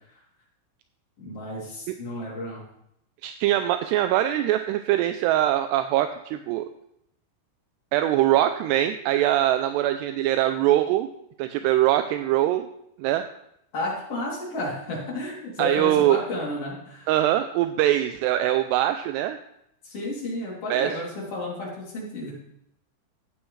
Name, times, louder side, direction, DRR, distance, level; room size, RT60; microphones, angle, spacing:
voice 1, 1.2-2.6 13.7-17.1 19.8-22.3, left 1 dB, 35° left, -5 dB, 3.5 m, -32 dB
voice 2, 3.2-6.7 7.9-11.1 11.4-12.7 13.0-13.2 15.6-16.2 17.1-19.4 20.7-20.9, right 13 dB, 85° right, 8 dB, 2.4 m, -22 dB
15.0 x 8.9 x 3.2 m, 0.76 s
omnidirectional pair, 5.2 m